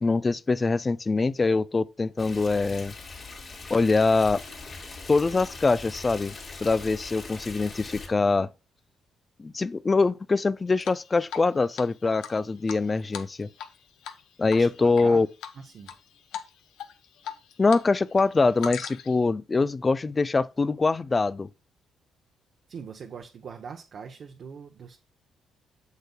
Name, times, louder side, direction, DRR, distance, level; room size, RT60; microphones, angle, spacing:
voice 1, 0.0-2.9 3.7-4.4 5.1-6.4 6.6-8.5 9.4-13.5 14.4-15.3 17.6-21.5, left 3 dB, 25° left, 0.3 m, -23 dB
Stream, 2.2-8.1, left 3 dB, 40° left, 3.5 m, -41 dB
Drip, 10.8-11.5 11.8-11.9 12.2-13.8 14.0-14.2 14.5-15.0 15.4-16.0 16.3-16.5 16.8-17.8 18.1-19.2, left 8 dB, 85° left, 0.8 m, -38 dB
voice 2, 14.5-15.2 15.5-15.9 22.7-25.0, right 6 dB, 55° right, 0.8 m, -41 dB
8.0 x 6.7 x 2.2 m
cardioid pair, 90°, 0 cm